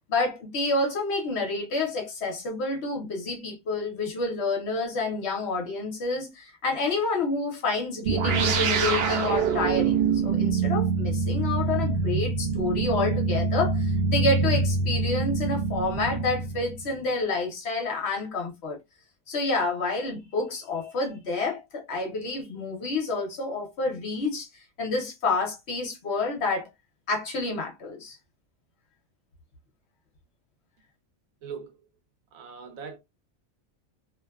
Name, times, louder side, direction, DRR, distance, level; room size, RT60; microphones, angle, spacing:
voice 1, 0.1-18.8 19.3-24.5 24.8-26.7 27.1-28.2, left 3 dB, 55° left, 1.0 m, -29 dB
sound 1, 8.1-16.9, right 4 dB, 60° right, 0.7 m, -25 dB
voice 2, 31.4-31.8 32.3-33.0, right 6 dB, 80° right, 1.2 m, -40 dB
2.8 x 2.2 x 2.2 m
omnidirectional pair, 1.4 m